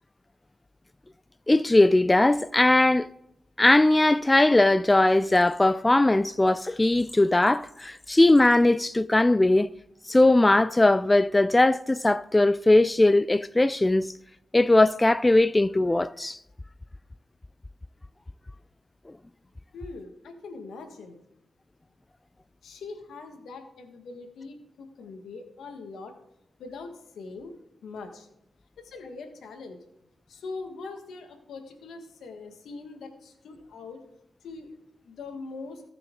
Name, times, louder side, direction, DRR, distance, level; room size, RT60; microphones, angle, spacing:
voice 1, 1.5-3.1 3.6-9.7 10.1-14.1 14.5-16.4, left 2 dB, 20° left, 0.3 m, -20 dB
voice 2, 19.7-21.2 22.6-26.1 26.6-27.5 27.8-28.3 28.8-29.8 30.3-34.0 34.4-34.7 35.0-35.8, left 3 dB, 85° left, 1.6 m, -42 dB
17.5 x 6.0 x 3.8 m
cardioid pair, 50°, 0 cm